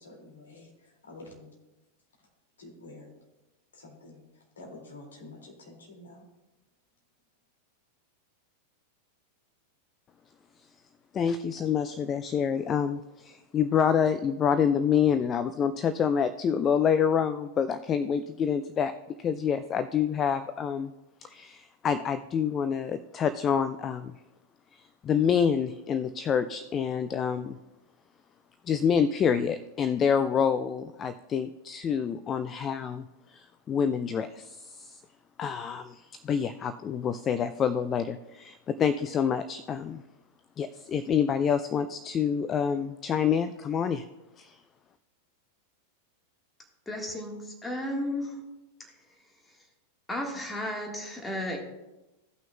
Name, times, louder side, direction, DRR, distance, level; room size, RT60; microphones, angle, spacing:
voice 1, 0.0-1.5 2.6-3.1 3.7-6.2, left 2 dB, 70° left, -1 dB, 2.4 m, -48 dB
voice 2, 11.1-18.9 19.2-20.9 21.2-24.1 24.7-27.6 28.7-35.0 35.4-40.0 40.6-44.0 44.4-44.6, left 7 dB, 25° left, 11 dB, 0.3 m, -27 dB
voice 3, 46.8-48.4 48.8-48.9 49.4-49.7 50.1-51.6, left 1 dB, 10° left, 1 dB, 1.6 m, -34 dB
16.5 x 5.9 x 2.3 m, 1.0 s
figure-of-eight pair, 90°, 0 cm